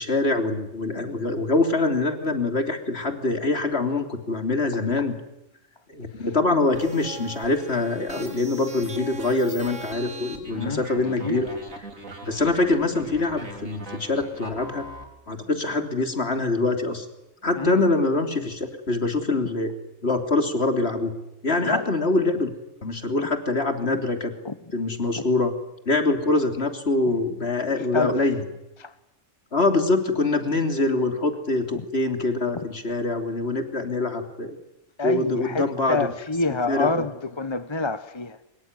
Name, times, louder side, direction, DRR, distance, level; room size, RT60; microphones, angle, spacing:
voice 1, 0.0-5.1 5.9-11.5 12.2-14.9 15.3-17.1 17.4-19.7 20.0-21.1 21.4-22.5 22.8-24.3 24.7-25.5 25.9-28.4 29.5-34.6 35.0-36.1 36.7-37.0, left 2 dB, 50° left, 3.5 m, -24 dB
sound 1, 6.7-15.0, right 2 dB, 85° right, 4.4 m, -40 dB
voice 2, 10.5-10.9 11.2-11.4 17.5-17.8 21.6-21.9 23.2-23.3 24.4-24.5 25.2-25.3 27.1-27.2 27.8-28.2 28.8-28.9 31.7-31.8 35.0-38.4, left 3 dB, 25° left, 1.0 m, -27 dB
24.5 x 23.0 x 9.7 m
omnidirectional pair, 1.4 m